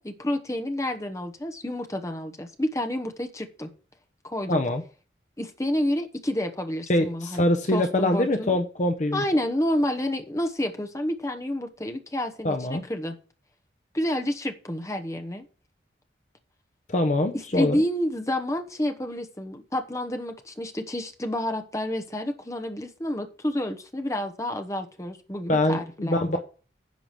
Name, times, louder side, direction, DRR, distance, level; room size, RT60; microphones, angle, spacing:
voice 1, 0.0-3.7 4.2-4.6 5.4-7.4 7.7-8.6 9.1-13.2 13.9-15.5 17.5-26.2, left 1 dB, 15° left, 6 dB, 1.1 m, -29 dB
voice 2, 4.5-4.8 6.9-9.2 12.4-12.8 16.9-17.8 25.5-26.4, left 1 dB, 40° left, 6 dB, 0.7 m, -24 dB
10.5 x 4.9 x 7.4 m, 0.38 s
head